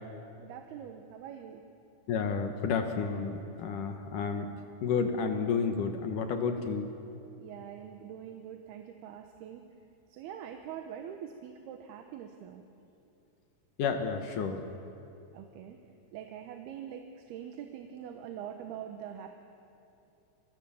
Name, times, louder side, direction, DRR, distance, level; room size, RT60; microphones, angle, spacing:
voice 1, 0.4-1.6 7.4-9.6 10.1-12.6 15.3-15.8 16.1-19.3, right 9 dB, 85° right, 5 dB, 3.1 m, -44 dB
voice 2, 2.1-4.5 4.8-6.9 13.8-14.6, left 5 dB, 65° left, 6 dB, 2.6 m, -31 dB
29.0 x 23.0 x 7.1 m, 2.8 s
omnidirectional pair, 4.5 m